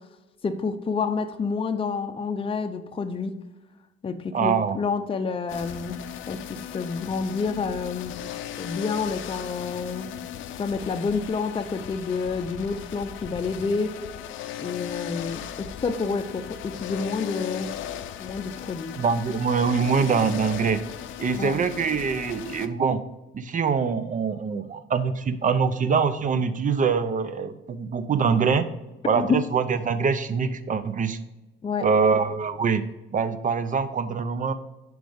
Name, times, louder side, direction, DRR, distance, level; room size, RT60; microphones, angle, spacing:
voice 1, 0.4-3.3 4.0-6.0 6.3-8.2 8.6-10.1 10.6-14.0 14.6-17.7 18.2-18.9 21.3-21.6 29.2-29.3 31.6-31.9, left 4 dB, 25° left, 6 dB, 0.5 m, -29 dB
voice 2, 4.3-4.8 19.0-20.8 21.2-23.0 23.3-28.7 29.1-31.2 31.8-32.8 33.1-34.5, right 5 dB, 40° right, 13 dB, 0.5 m, -24 dB
sound 1, 5.5-22.7, left 10 dB, 80° left, 0.5 m, -37 dB
5.1 x 4.7 x 5.0 m, 1.1 s
cardioid pair, 90°, 20 cm